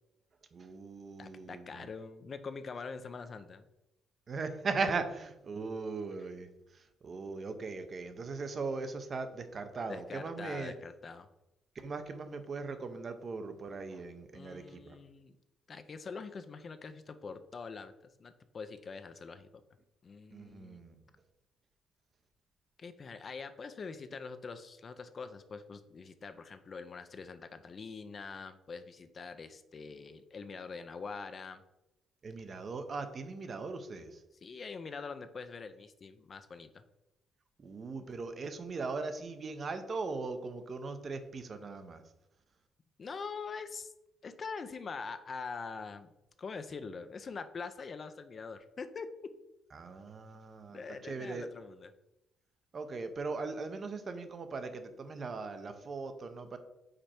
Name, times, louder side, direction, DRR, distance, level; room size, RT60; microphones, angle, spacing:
voice 1, 0.5-1.9 4.3-6.5 6.7-10.7 11.8-15.0 20.3-21.0 32.2-34.2 37.6-42.0 49.7-51.5 52.7-56.6, right 4 dB, 45° right, 9 dB, 0.7 m, -39 dB
voice 2, 1.2-3.6 9.9-11.3 14.3-15.3 15.7-17.9 18.2-19.5 20.0-20.8 22.8-31.6 34.4-36.8 43.0-43.9 44.2-46.1 46.4-49.1 50.7-51.9, left 5 dB, 45° left, 10 dB, 0.5 m, -44 dB
5.1 x 4.4 x 4.3 m, 0.91 s
cardioid pair, 90°, 0 cm